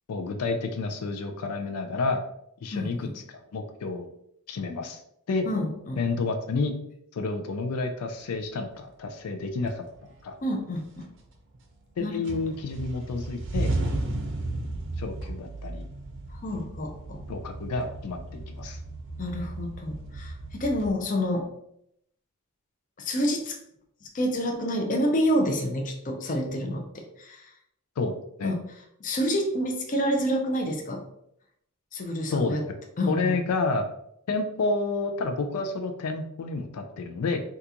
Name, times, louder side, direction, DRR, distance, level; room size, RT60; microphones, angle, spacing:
voice 1, 0.1-2.2 2.6-4.1 4.5-5.0 5.3-5.5 6.0-6.7 7.1-9.8 10.2-10.4 12.0-13.7 15.0-15.9 17.3-18.8 28.0-28.6 32.3-32.6 33.1-33.9 34.3-37.4, left 3 dB, 90° left, 5 dB, 0.4 m, -30 dB
voice 2, 2.7-3.1 5.4-6.0 10.4-11.1 12.0-12.2 16.3-17.2 19.2-21.5 23.0-23.6 24.1-27.4 28.4-28.6 29.0-31.0 31.9-32.6 33.0-33.4, equal, 35° left, 2 dB, 0.5 m, -28 dB
sound 1, 9.0-9.1 9.7-10.4 10.8-11.9 12.2-20.9, right 2 dB, 55° right, 0.6 m, -34 dB
3.7 x 2.3 x 2.8 m, 0.73 s
head